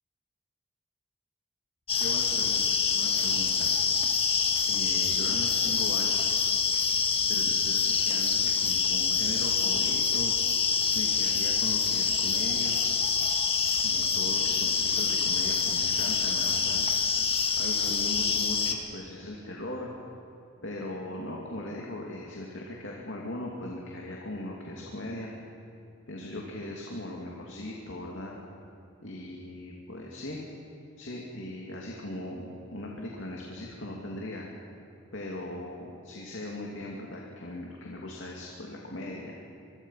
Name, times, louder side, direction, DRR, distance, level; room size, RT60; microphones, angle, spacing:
sound 1, 1.9-18.7, left 5 dB, 30° left, 1.6 m, -26 dB
voice 1, 2.0-2.6 2.9-3.7 4.7-6.4 7.3-10.3 10.9-12.8 13.8-16.8 17.6-19.9 20.6-25.3 26.1-28.3 29.0-30.4 31.0-34.5 35.1-39.3, left 1 dB, 65° left, -2 dB, 2.7 m, -39 dB
25.5 x 22.5 x 5.8 m, 2.7 s
head